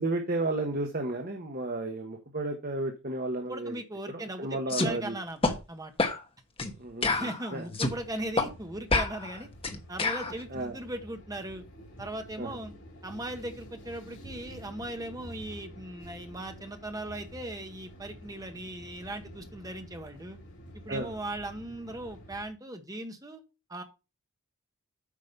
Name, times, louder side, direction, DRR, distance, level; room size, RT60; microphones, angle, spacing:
voice 1, 0.0-3.8 4.1-5.1 6.8-7.6 10.5-10.7 12.4-12.6 20.9-21.1, right 2 dB, 40° right, 3 dB, 1.3 m, -33 dB
voice 2, 3.5-5.9 7.1-9.5 9.9-11.6 12.0-12.7 13.0-20.4 20.7-23.4 23.7-23.8, right 1 dB, 15° right, 6 dB, 1.2 m, -38 dB
sound 1, 4.7-4.9 5.4-5.6 6.0-6.2 6.6-6.7 7.0-8.0 8.4-8.5 8.9-10.3, left 3 dB, 25° left, 1.1 m, -28 dB
sound 2, 7.9-22.5, equal, 55° left, 3.4 m, -49 dB
8.5 x 5.2 x 5.3 m, 0.29 s
head